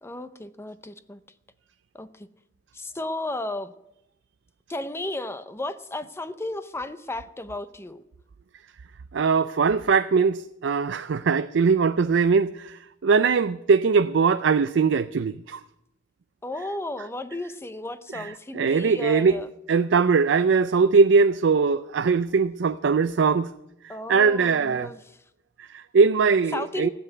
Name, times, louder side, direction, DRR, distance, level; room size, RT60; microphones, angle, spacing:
voice 1, 0.0-1.2 1.9-2.3 2.7-3.7 4.7-8.0 16.4-19.5 23.9-25.2 26.5-26.9, left 2 dB, 15° left, 0.6 m, -34 dB
voice 2, 9.1-15.6 18.1-19.4 19.7-23.5 23.8-24.9 25.6-26.9, right 5 dB, 70° right, 0.4 m, -21 dB
15.5 x 7.9 x 9.2 m
head